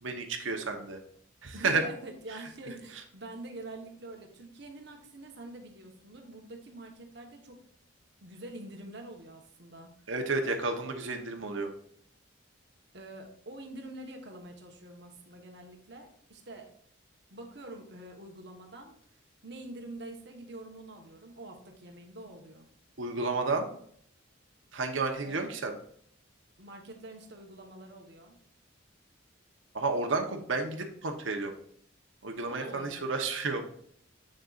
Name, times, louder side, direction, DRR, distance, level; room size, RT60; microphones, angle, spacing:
voice 1, 0.0-1.0 1.4-1.8 2.3-2.4 10.1-11.7 23.0-23.7 24.7-25.7 29.7-31.5 32.2-33.6, right 3 dB, 75° right, 3 dB, 1.0 m, -31 dB
voice 2, 1.5-7.6 8.2-9.9 12.9-16.7 17.3-18.9 19.4-22.7 25.2-25.5 26.6-28.4 32.4-33.1, right 2 dB, 55° right, 3 dB, 1.3 m, -46 dB
7.7 x 6.6 x 2.5 m, 0.63 s
head